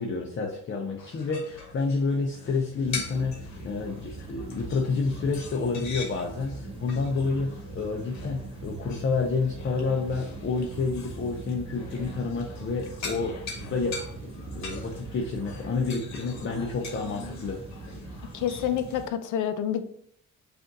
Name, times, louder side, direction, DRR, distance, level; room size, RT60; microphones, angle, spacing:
voice 1, 0.0-14.0 14.5-17.6, left 4 dB, 40° left, 1 dB, 0.7 m, -29 dB
sound 1, 1.0-19.1, left 4 dB, 65° left, 1.1 m, -42 dB
sound 2, 2.8-19.1, right 4 dB, 20° right, 0.5 m, -42 dB
voice 2, 18.3-19.8, left 9 dB, 80° left, 10 dB, 0.6 m, -28 dB
4.9 x 2.6 x 3.9 m, 0.63 s
cardioid pair, 90°, 30 cm